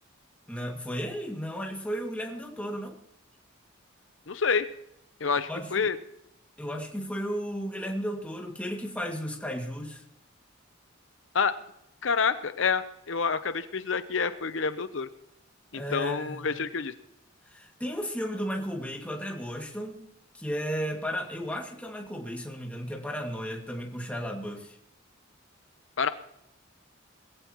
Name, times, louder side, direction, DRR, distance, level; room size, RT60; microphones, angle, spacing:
voice 1, 0.5-3.0 5.5-5.9 6.6-10.0 15.7-16.5 17.5-20.0 20.3-24.8, equal, 5° left, 1 dB, 2.1 m, -34 dB
voice 2, 4.3-4.7 5.2-6.0 11.3-11.6 12.0-15.1 15.7-16.9 26.0-26.1, left 5 dB, 70° left, 11 dB, 0.7 m, -28 dB
21.0 x 15.5 x 3.0 m, 0.78 s
head